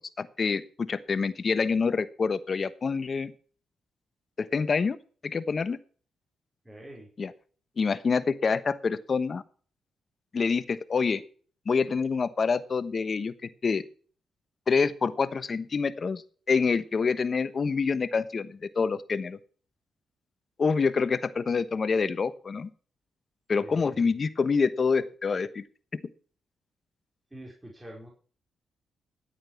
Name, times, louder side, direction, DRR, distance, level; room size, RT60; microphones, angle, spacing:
voice 1, 0.2-3.3 4.4-5.0 5.2-5.8 7.2-7.3 7.8-9.4 10.3-11.2 11.7-13.3 13.6-13.8 14.7-16.2 16.5-19.4 20.6-22.7 23.5-25.6 25.9-26.0, left 5 dB, 45° left, 14 dB, 1.1 m, -26 dB
voice 2, 6.6-7.1 23.6-24.0 27.3-28.1, right 1 dB, 15° right, -2 dB, 4.4 m, -45 dB
11.0 x 8.8 x 7.0 m, 0.43 s
cardioid pair, 70°, 0 cm